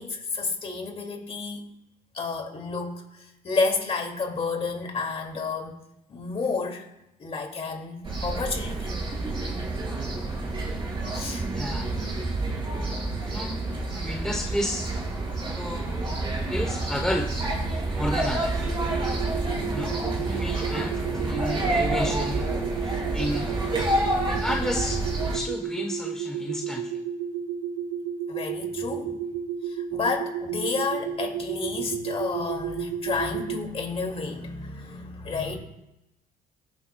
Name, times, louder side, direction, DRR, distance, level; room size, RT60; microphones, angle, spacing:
voice 1, 0.0-1.6 2.1-5.8 6.1-6.8 7.2-8.9 11.1-11.5 19.2-20.3 28.3-29.2 29.6-35.6, left 4 dB, 35° left, 2 dB, 2.4 m, -31 dB
sound 1, 8.0-25.4, right 2 dB, 30° right, 4.4 m, -29 dB
voice 2, 11.5-11.9 13.2-13.6 13.9-14.9 15.6-16.0 16.5-17.4 17.9-18.6 19.7-19.9 20.3-22.5 23.1-23.5 24.3-26.9, left 1 dB, 5° left, 2 dB, 0.9 m, -31 dB
sound 2, 18.8-33.6, right 7 dB, 60° right, 0.7 m, -32 dB
22.0 x 9.0 x 2.3 m, 0.92 s
cardioid pair, 110°, 17 cm